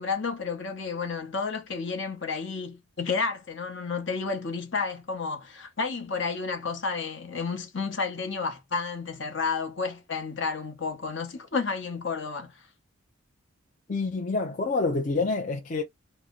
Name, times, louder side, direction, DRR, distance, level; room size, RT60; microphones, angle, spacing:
voice 1, 0.0-12.6, left 4 dB, 60° left, 0.9 m, -31 dB
voice 2, 13.9-15.8, left 3 dB, 40° left, 0.5 m, -27 dB
3.1 x 2.0 x 3.6 m
head